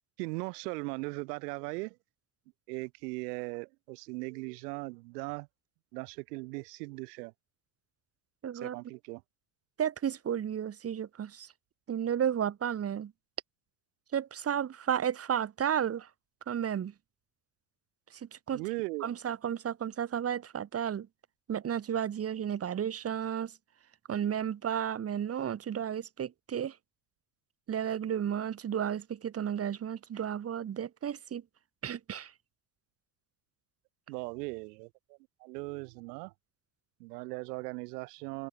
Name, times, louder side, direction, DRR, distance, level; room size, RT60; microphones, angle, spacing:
voice 1, 0.2-2.0 2.7-5.5 5.9-7.3 8.5-9.2 18.5-19.0 34.1-34.9 35.4-36.3 37.0-38.5, right 27 dB, 85° right, 6.2 m, -38 dB
voice 2, 8.4-8.8 9.8-11.5 11.9-13.1 14.1-16.1 16.5-16.9 18.1-18.6 19.0-21.1 21.5-23.5 24.1-26.8 27.7-31.4 31.8-32.3, right 9 dB, 30° right, 2.6 m, -33 dB
open air
cardioid pair, 130°, 47 cm